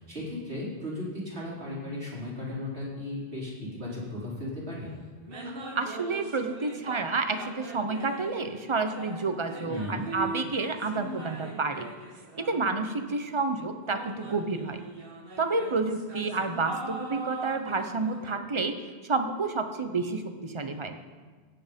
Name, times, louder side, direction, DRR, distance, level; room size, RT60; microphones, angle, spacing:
voice 1, 0.0-4.9 9.6-10.0, left 1 dB, 85° right, -7 dB, 4.4 m, -36 dB
sound 1, 4.7-4.8 5.2-7.1 7.3-13.2 13.8-18.3, right 2 dB, 60° right, 1.6 m, -41 dB
voice 2, 5.4-11.9 12.5-14.8 15.4-18.8 19.0-21.0, right 3 dB, 30° right, 7 dB, 0.9 m, -30 dB
17.0 x 7.9 x 5.2 m, 1.5 s
omnidirectional pair, 1.1 m